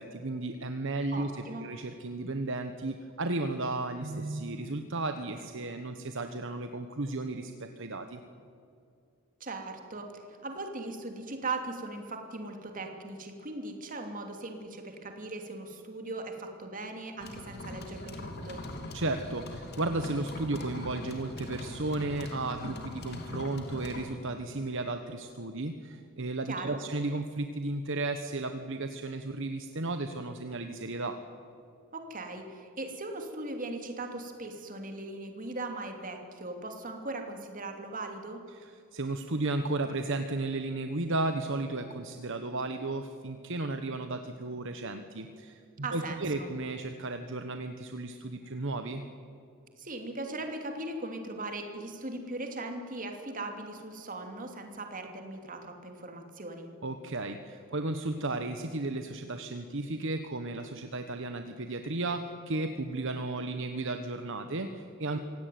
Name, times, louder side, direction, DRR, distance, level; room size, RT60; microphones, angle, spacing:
voice 1, 0.0-1.3 1.6-8.2 18.9-31.2 38.9-49.0 56.8-65.2, right 2 dB, 60° right, 7 dB, 1.2 m, -34 dB
voice 2, 1.1-1.7 9.4-18.6 26.5-26.8 31.9-38.4 45.8-46.5 49.8-56.7, right 2 dB, 40° right, 4 dB, 2.9 m, -39 dB
sound 1, 17.2-24.0, left 2 dB, 50° left, 3.0 m, -41 dB
25.5 x 17.0 x 9.4 m, 2.4 s
head